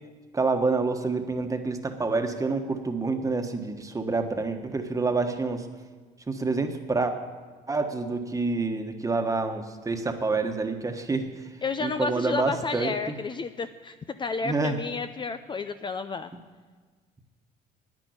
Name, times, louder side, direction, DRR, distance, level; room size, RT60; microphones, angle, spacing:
voice 1, 0.3-5.7 6.3-7.1 7.7-11.5 11.8-13.2 14.4-14.8, right 3 dB, 20° right, 5 dB, 1.4 m, -27 dB
voice 2, 11.6-16.3, left 4 dB, 30° left, 9 dB, 0.5 m, -31 dB
10.5 x 9.8 x 9.6 m, 1.4 s
cardioid pair, 110°, 17 cm